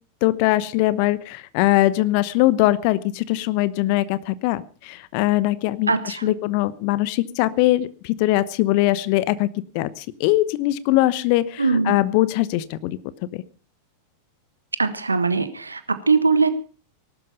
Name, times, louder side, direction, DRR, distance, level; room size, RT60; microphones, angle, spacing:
voice 1, 0.2-9.5 9.7-13.0 13.3-13.4, left 16 dB, 45° left, 18 dB, 1.0 m, -21 dB
voice 2, 5.9-6.3 11.6-12.0 14.8-16.5, right 4 dB, 80° right, 12 dB, 1.4 m, -21 dB
19.0 x 12.0 x 5.4 m, 0.38 s
figure-of-eight pair, 90°, 0 cm